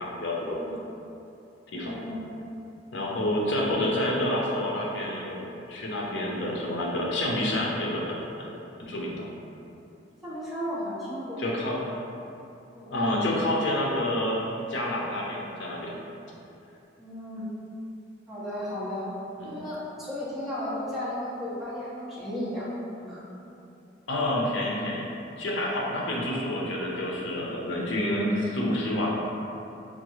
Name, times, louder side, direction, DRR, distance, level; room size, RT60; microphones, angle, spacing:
voice 1, 0.0-0.6 1.7-2.0 2.9-8.5 8.8-9.2 11.4-11.9 12.9-14.4 14.7-16.0 19.4-19.6 24.1-25.1 25.4-29.4, left 1 dB, 75° left, -3 dB, 0.6 m, -28 dB
voice 2, 1.7-2.2 10.2-11.4 12.7-12.9 17.0-17.5 18.3-19.1 19.4-22.7 23.0-23.2, left 1 dB, ahead, -11 dB, 1.1 m, -34 dB
5.8 x 2.3 x 3.0 m, 2.8 s
head